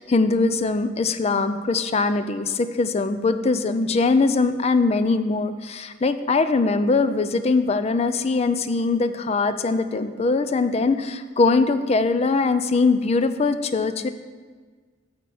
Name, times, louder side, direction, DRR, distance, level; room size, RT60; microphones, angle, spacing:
voice 1, 0.0-14.1, left 3 dB, 35° left, 10 dB, 0.4 m, -21 dB
8.4 x 4.3 x 7.0 m, 1.5 s
head